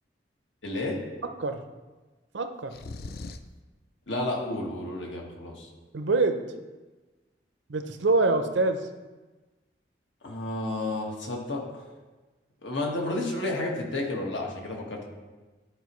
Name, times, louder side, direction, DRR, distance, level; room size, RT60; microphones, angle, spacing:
voice 1, 0.6-1.0 4.1-5.7 10.2-11.8 12.6-15.0, left 2 dB, 90° left, 0 dB, 1.5 m, -31 dB
voice 2, 2.3-2.7 5.9-6.4 7.7-8.9, right 3 dB, 85° right, 7 dB, 0.6 m, -25 dB
sound 1, 2.7-3.6, left 3 dB, 55° left, 0.4 m, -39 dB
11.5 x 4.8 x 3.1 m, 1.2 s
head